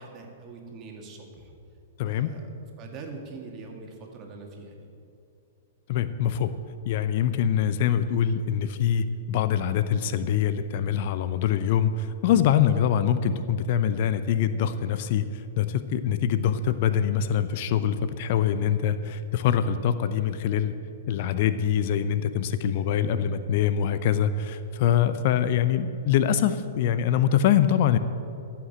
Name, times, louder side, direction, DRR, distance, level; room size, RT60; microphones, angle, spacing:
voice 1, 0.0-1.5 2.0-4.9, right 3 dB, 35° right, 1 dB, 2.1 m, -43 dB
voice 2, 2.0-2.3 5.9-6.5 6.9-20.7 21.1-28.0, left 9 dB, 50° left, 12 dB, 0.6 m, -24 dB
14.5 x 5.9 x 7.4 m, 2.7 s
figure-of-eight pair, 110°, 0 cm